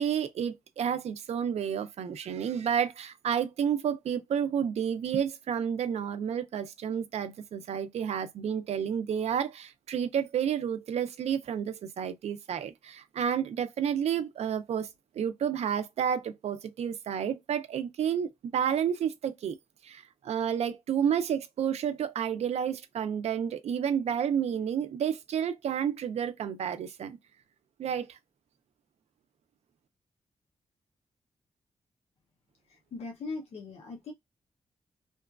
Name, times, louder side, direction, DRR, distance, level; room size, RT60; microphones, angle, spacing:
voice 1, 0.0-14.9 15.2-19.6 19.8-27.2 27.8-28.2, right 8 dB, 85° right, 0.4 m, -30 dB
voice 2, 32.7-34.1, left 3 dB, 75° left, 0.6 m, -40 dB
2.9 x 2.3 x 2.2 m
wide cardioid pair, 145°, 11 cm